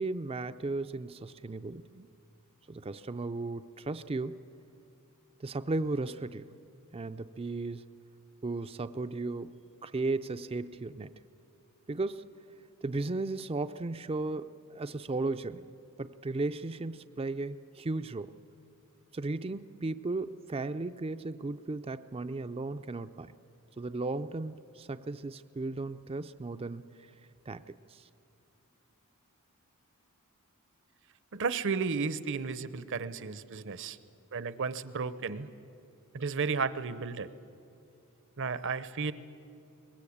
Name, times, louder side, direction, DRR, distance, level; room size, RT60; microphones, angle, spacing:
voice 1, 0.0-2.1 2.7-4.4 5.4-6.5 6.9-7.9 8.4-11.2 11.9-12.3 12.8-15.7 16.0-18.4 19.1-23.3 23.8-26.9 27.5-28.1, right 3 dB, 25° right, 11 dB, 0.5 m, -35 dB
voice 2, 31.3-34.0 34.3-35.5 36.1-37.3 38.4-39.1, right 5 dB, 60° right, 15 dB, 0.8 m, -33 dB
23.0 x 20.5 x 8.6 m, 2.6 s
head